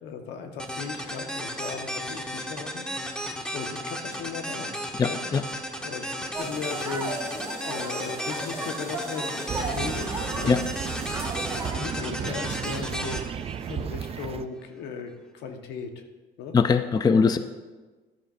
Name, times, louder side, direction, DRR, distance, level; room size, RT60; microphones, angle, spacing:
voice 1, 0.0-2.9 3.5-4.8 5.0-5.2 5.8-10.6 11.7-16.0 16.4-16.6 17.0-17.3, left 5 dB, 80° left, 5 dB, 1.3 m, -37 dB
sound 1, 0.6-14.3, equal, 5° left, 1.3 m, -34 dB
voice 2, 5.0-5.4 10.5-10.6 16.5-17.4, left 5 dB, 25° left, 10 dB, 0.5 m, -21 dB
sound 2, 6.3-11.7, right 2 dB, 15° right, 2.6 m, -36 dB
sound 3, 9.5-14.5, right 8 dB, 35° right, 0.4 m, -34 dB
13.5 x 12.0 x 2.6 m, 1.3 s
cardioid pair, 110°, 17 cm